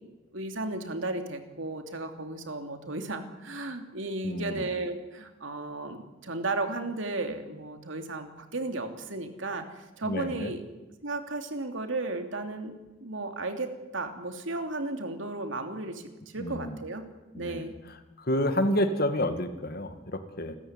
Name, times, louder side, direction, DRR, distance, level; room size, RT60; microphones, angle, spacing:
voice 1, 0.3-10.6 11.0-17.0 17.3-17.7, right 2 dB, 70° right, 5 dB, 3.0 m, -34 dB
voice 2, 4.2-4.7 10.0-10.5 16.4-16.8 17.3-17.7 18.2-20.5, left 1 dB, 50° left, 8 dB, 2.0 m, -29 dB
29.0 x 14.5 x 9.7 m, 1.1 s
head